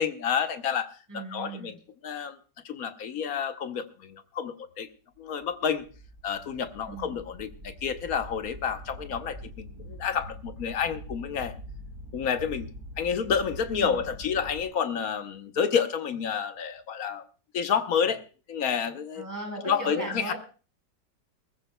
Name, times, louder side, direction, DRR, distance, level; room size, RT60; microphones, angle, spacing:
voice 1, 0.0-1.8 2.0-2.4 2.6-4.9 5.2-5.9 6.2-11.5 12.1-12.7 13.0-17.3 17.5-18.2 18.5-19.2 19.7-20.3, left 7 dB, 60° left, 9 dB, 1.2 m, -29 dB
voice 2, 1.1-1.8 6.8-7.2 9.7-9.8 13.7-14.0 19.1-20.3, right 1 dB, 10° right, 1 dB, 4.4 m, -37 dB
sound 1, 5.4-14.6, equal, 45° right, 3.7 m, -44 dB
22.0 x 14.5 x 2.2 m, 0.37 s
omnidirectional pair, 1.9 m